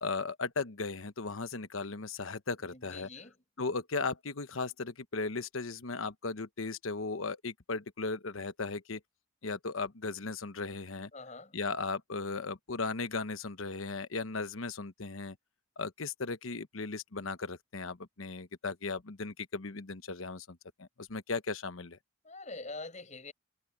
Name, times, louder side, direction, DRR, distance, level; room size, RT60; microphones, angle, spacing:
voice 1, 0.0-3.1 3.6-9.0 9.4-11.1 11.5-15.4 15.8-22.0, left 4 dB, 80° left, 1.1 m, -37 dB
voice 2, 2.6-3.4 11.1-11.6 22.2-23.3, left 3 dB, 35° left, 7.3 m, -45 dB
head